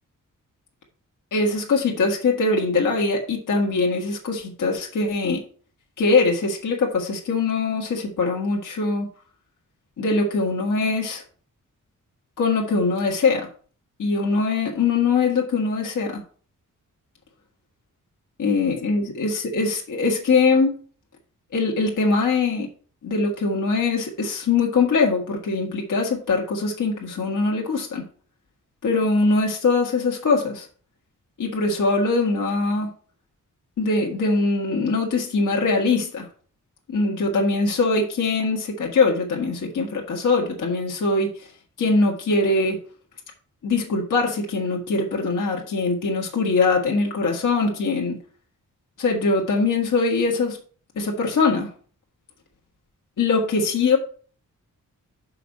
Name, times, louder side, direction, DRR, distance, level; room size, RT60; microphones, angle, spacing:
voice 1, 1.3-5.4 6.0-9.1 10.0-11.2 12.4-13.5 14.0-16.2 18.4-20.8 21.5-22.7 23.0-28.1 28.8-30.7 31.4-32.9 33.8-36.3 36.9-41.3 41.8-42.8 43.6-48.2 49.0-50.6 51.0-51.7 53.2-54.0, left 3 dB, 70° left, -1 dB, 1.8 m, -22 dB
5.9 x 5.8 x 5.3 m, 0.42 s
wide cardioid pair, 175°, 32 cm